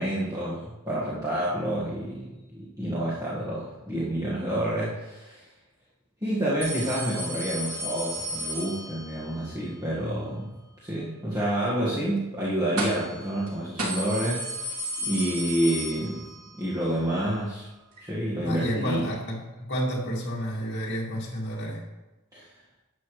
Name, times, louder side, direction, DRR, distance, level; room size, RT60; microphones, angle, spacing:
voice 1, 0.0-5.4 6.2-10.5 10.8-16.2 16.6-17.7 18.0-19.1 22.3-22.5, right 1 dB, 15° right, -9 dB, 1.6 m, -29 dB
sound 1, 6.6-9.3 12.8-13.2 13.5-13.6 13.8-16.5 16.8-16.9 18.0-18.1, right 1 dB, 80° right, 2.7 m, -33 dB
voice 2, 18.4-21.8, equal, 55° left, -4 dB, 2.4 m, -30 dB
11.5 x 8.2 x 3.2 m, 1.1 s
head